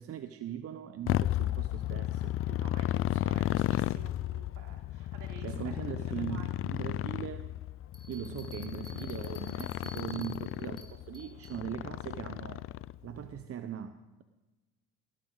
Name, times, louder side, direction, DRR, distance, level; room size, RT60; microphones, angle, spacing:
voice 1, 0.0-2.3 5.4-7.5 8.1-12.6 13.0-14.2, right 10 dB, 50° right, 10 dB, 0.9 m, -40 dB
Motorcycle, 1.1-13.2, left 13 dB, 45° left, 0.4 m, -34 dB
voice 2, 2.5-6.5, right 6 dB, 70° right, 2 dB, 3.3 m, -52 dB
Bell, 7.9-11.6, left 1 dB, 15° left, 3.1 m, -51 dB
20.0 x 16.0 x 4.0 m, 1.1 s
supercardioid pair, 75°, 31 cm